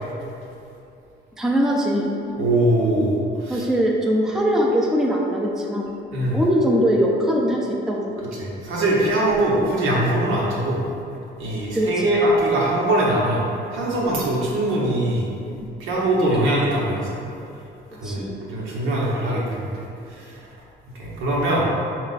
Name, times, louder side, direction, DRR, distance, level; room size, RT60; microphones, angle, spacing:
voice 1, 1.4-2.1 3.5-5.9 6.3-8.2 9.6-9.7 11.7-11.9 17.9-18.4, equal, ahead, -2 dB, 0.4 m, -21 dB
voice 2, 2.4-3.6 6.1-6.4 8.4-10.8 11.4-13.4 13.7-15.2 15.8-17.1 18.0-18.2 18.5-19.7 20.2-20.3 21.0-21.7, right 1 dB, 85° right, -5 dB, 0.9 m, -21 dB
4.2 x 2.4 x 4.0 m, 2.7 s
cardioid pair, 90°, 20 cm